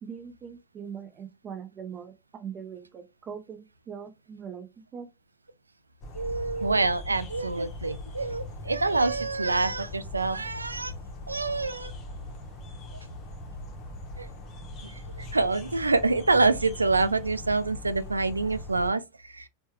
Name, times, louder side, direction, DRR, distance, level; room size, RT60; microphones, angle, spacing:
voice 1, 0.0-4.7 4.9-5.1, right 7 dB, 25° right, 0.7 m, -41 dB
sound 1, 6.0-18.9, left 2 dB, 30° left, 0.8 m, -40 dB
voice 2, 6.1-10.9 11.3-11.9 14.2-14.3 14.8-19.5, right 3 dB, 80° right, 0.3 m, -26 dB
4.3 x 2.2 x 2.9 m
figure-of-eight pair, 90°, 0 cm